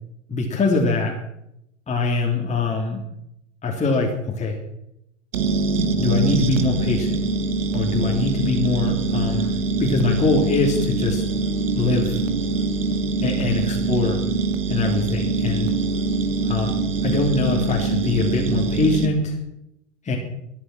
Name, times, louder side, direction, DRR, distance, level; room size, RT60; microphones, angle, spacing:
voice 1, 0.3-1.1 1.9-3.0 3.6-4.6 6.0-7.2 7.7-11.3 11.7-12.2 13.2-14.2 14.7-15.7 16.4-16.8 17.0-19.4 20.0-20.2, left 3 dB, 20° left, -1 dB, 3.1 m, -23 dB
sound 1, 5.3-19.1, right 3 dB, 75° right, 1.7 m, -23 dB
21.5 x 9.9 x 6.1 m, 0.81 s
hypercardioid pair, 95°, 38 cm